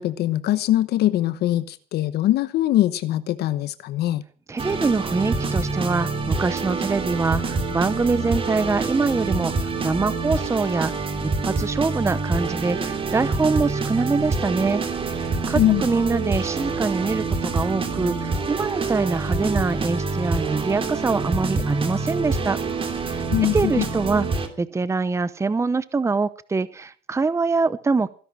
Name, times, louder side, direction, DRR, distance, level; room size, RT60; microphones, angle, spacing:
voice 1, 0.0-4.2 15.5-15.8 23.3-23.9, left 14 dB, 75° left, 14 dB, 1.0 m, -22 dB
voice 2, 4.5-10.9 11.2-22.6 23.1-23.2 23.5-28.1, right 4 dB, 15° right, 16 dB, 0.8 m, -24 dB
sound 1, 4.6-24.5, right 3 dB, 30° right, 2.9 m, -26 dB
17.0 x 11.0 x 6.2 m, 0.43 s
cardioid pair, 110°, 17 cm